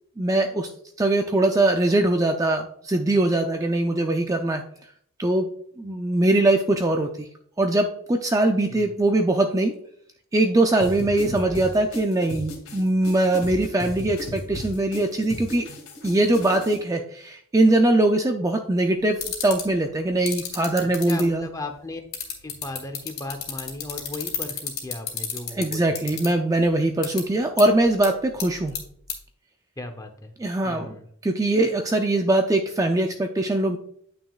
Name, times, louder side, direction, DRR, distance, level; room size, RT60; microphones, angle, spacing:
voice 1, 0.2-0.7 1.0-4.6 5.2-5.5 5.8-7.3 7.6-9.7 10.3-15.7 16.0-21.5 25.5-28.7 30.4-31.0 31.2-33.8, right 2 dB, 15° right, 4 dB, 0.3 m, -22 dB
sound 1, 10.8-16.8, left 1 dB, 70° left, 2.5 m, -36 dB
sound 2, 19.1-19.6 20.3-21.2 22.1-26.3 27.0-27.2 27.6-27.7 28.0-28.1 28.4-28.8 29.1-29.2, left 10 dB, 45° left, 1.7 m, -29 dB
voice 2, 20.8-22.0 22.4-26.0 29.8-30.3 30.6-31.1, left 2 dB, 15° left, 6 dB, 0.7 m, -36 dB
9.3 x 6.0 x 2.4 m, 0.65 s
head